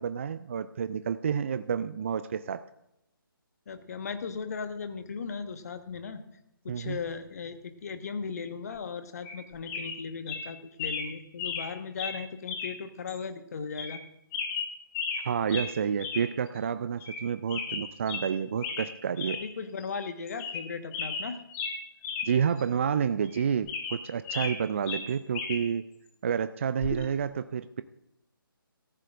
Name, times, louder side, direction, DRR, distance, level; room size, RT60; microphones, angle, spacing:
voice 1, 0.0-2.6 6.7-7.0 15.2-19.4 22.2-25.9 26.2-27.8, right 7 dB, 35° right, 12 dB, 0.4 m, -29 dB
voice 2, 3.7-6.2 6.6-14.0 19.3-21.4, left 5 dB, 45° left, 8 dB, 1.3 m, -37 dB
sound 1, 9.2-9.4 9.7-10.0 10.3-10.4 10.8-11.1 11.4-11.7 12.0-12.2 12.5-12.7 13.1-13.2 13.7-14.0 14.3-15.2 15.5-15.7 16.0-16.3 16.6-16.7 17.0-17.2 17.5-18.3 18.6-18.9 19.2-19.4 19.8-19.9 20.3-20.7 20.9-22.3 22.6-22.7 23.2-24.6 24.9-25.6 26.8-27.0, left 5 dB, 15° left, 1.7 m, -34 dB
17.0 x 14.0 x 2.5 m, 0.85 s
figure-of-eight pair, 145°, 12 cm